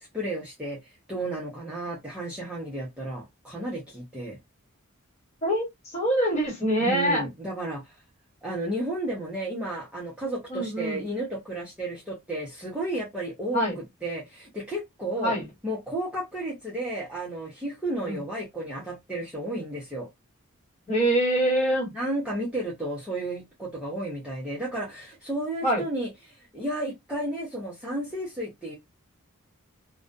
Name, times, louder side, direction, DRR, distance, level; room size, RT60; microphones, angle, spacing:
voice 1, 0.1-4.4 6.8-7.8 8.4-13.6 14.0-15.3 15.6-20.1 21.9-26.1 26.5-28.7, right 1 dB, 5° right, 0.7 m, -32 dB
voice 2, 5.4-7.2 10.5-11.0 13.5-13.8 15.2-15.4 18.0-18.2 20.9-21.9 25.6-25.8, right 1 dB, 30° left, 1.3 m, -25 dB
2.4 x 2.1 x 2.5 m
head